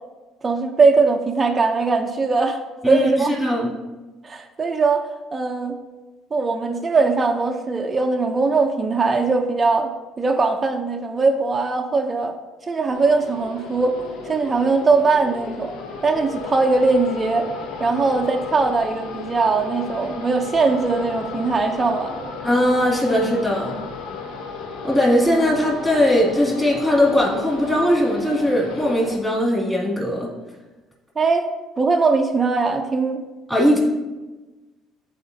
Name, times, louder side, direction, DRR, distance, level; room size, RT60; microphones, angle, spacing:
voice 1, 0.4-2.6 2.9-3.3 4.2-5.7 6.3-9.9 10.2-12.3 12.7-14.0 14.2-15.7 16.0-17.5 17.8-22.3 31.2-31.5 31.8-33.2, right 4 dB, 20° right, 2 dB, 0.6 m, -20 dB
voice 2, 2.8-3.7 22.4-23.7 24.8-30.3 33.5-33.8, equal, 5° left, -4 dB, 2.4 m, -19 dB
sound 1, 12.9-29.2, left 4 dB, 85° left, 0.8 m, -34 dB
12.5 x 4.2 x 2.7 m, 1.2 s
cardioid pair, 130°, 0 cm